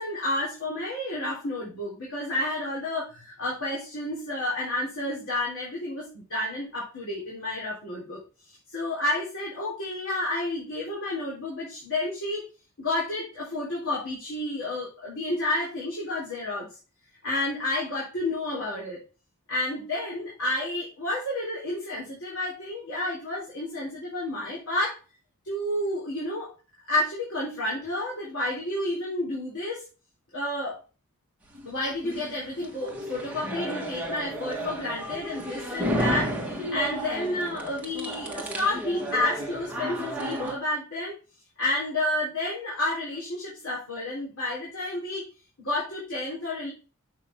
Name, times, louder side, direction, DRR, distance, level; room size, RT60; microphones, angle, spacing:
voice 1, 0.0-8.2 8.5-12.4 12.8-16.7 17.2-19.0 19.5-25.0 25.4-26.5 26.9-29.9 30.3-30.8 31.6-41.1 41.6-45.3 45.6-46.7, left 1 dB, 65° left, -5 dB, 3.5 m, -30 dB
sound 1, 31.5-40.5, equal, 5° right, 1.6 m, -33 dB
7.3 x 6.1 x 4.4 m, 0.34 s
head